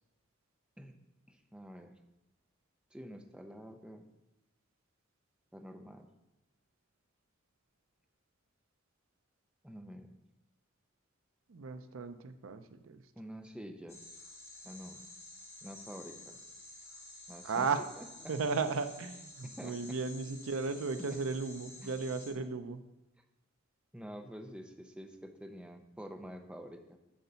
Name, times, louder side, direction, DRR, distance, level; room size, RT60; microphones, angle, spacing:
voice 1, 1.3-1.9 2.9-4.1 5.5-6.1 9.6-10.1 13.2-14.0 14.6-15.0 15.6-16.4 17.3-17.7 18.0-18.4 19.4-20.0 21.0-21.2 21.8-21.9 23.9-27.0, equal, 5° right, 5 dB, 0.6 m, -48 dB
voice 2, 11.5-13.0 17.4-17.8 18.3-22.8, right 4 dB, 70° right, 10 dB, 0.5 m, -35 dB
sound 1, 13.9-22.3, left 2 dB, 15° left, 2.3 m, -51 dB
8.5 x 3.9 x 6.8 m, 0.98 s
head